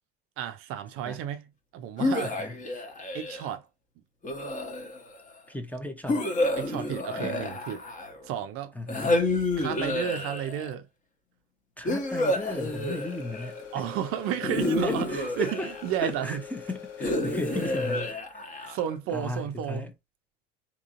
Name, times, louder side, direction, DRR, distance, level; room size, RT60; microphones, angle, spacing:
voice 1, 0.4-1.5 1.7-2.4 3.1-3.7 6.6-7.8 8.2-8.7 9.6-10.9 13.7-16.4 17.9-18.0 18.7-19.9, right 10 dB, 45° right, 0.5 m, -32 dB
sound 1, 2.0-3.5 4.2-5.2 6.1-8.3 8.9-10.7 11.9-13.6 14.4-16.1 17.0-19.0, left 2 dB, 25° left, 1.0 m, -29 dB
voice 2, 2.2-2.5 5.5-6.8 7.2-7.3 8.8-9.2 11.8-13.6 14.6-15.7 16.0-18.2 18.6-18.8 19.1-19.9, left 2 dB, 5° left, 0.7 m, -36 dB
sound 2, 11.8-18.1, left 7 dB, 55° left, 1.2 m, -43 dB
3.7 x 2.9 x 2.5 m
figure-of-eight pair, 65°, 31 cm